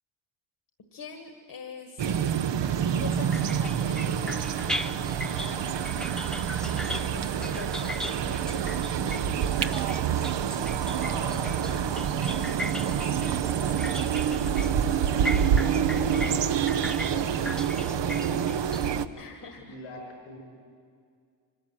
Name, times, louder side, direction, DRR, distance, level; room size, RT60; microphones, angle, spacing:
voice 1, 0.9-2.2 3.0-6.1 6.8-9.1 9.4-10.0 19.2-19.8, left 5 dB, 60° left, 4 dB, 1.9 m, -44 dB
sound 1, 2.0-19.1, right 8 dB, 65° right, 0.9 m, -27 dB
sound 2, 3.1-19.0, left 1 dB, ahead, 0.6 m, -39 dB
voice 2, 10.9-12.2 12.8-13.2 14.5-14.9 15.4-17.6 17.8-18.5 19.6-20.4, left 2 dB, 85° left, 1 dB, 5.3 m, -44 dB
24.0 x 12.5 x 9.2 m, 2.2 s
supercardioid pair, 45°, 46 cm